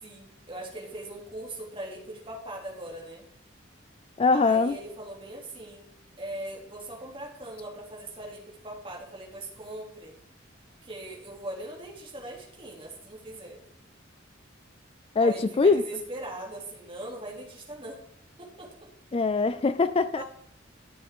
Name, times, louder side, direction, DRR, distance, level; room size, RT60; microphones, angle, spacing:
voice 1, 0.0-3.3 4.3-5.9 6.2-10.1 10.8-13.6 15.2-18.0 18.4-18.9 20.1-20.2, right 1 dB, 30° right, 3.0 m, -40 dB
voice 2, 4.2-4.8 15.2-15.8 19.1-20.2, left 4 dB, 30° left, 0.4 m, -22 dB
13.0 x 7.8 x 3.7 m
head